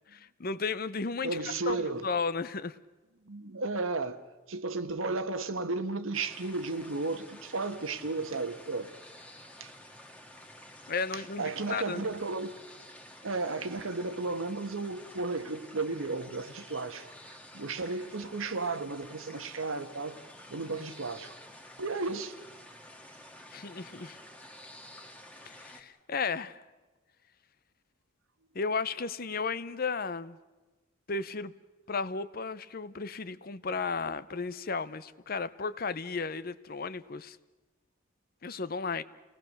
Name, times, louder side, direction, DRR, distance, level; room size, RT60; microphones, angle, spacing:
voice 1, 0.1-2.8 10.9-12.0 23.5-24.2 25.5-26.6 28.5-30.4 31.1-31.5 31.9-37.4 38.4-39.0, left 4 dB, 45° left, 0.7 m, -34 dB
voice 2, 1.2-2.0 3.2-4.2 4.5-8.9 9.6-9.7 11.1-12.6 13.2-20.2 20.5-21.4 21.8-22.4, right 3 dB, 75° right, 1.3 m, -34 dB
sound 1, 6.1-25.8, left 1 dB, 5° left, 1.7 m, -51 dB
29.5 x 19.5 x 6.6 m
head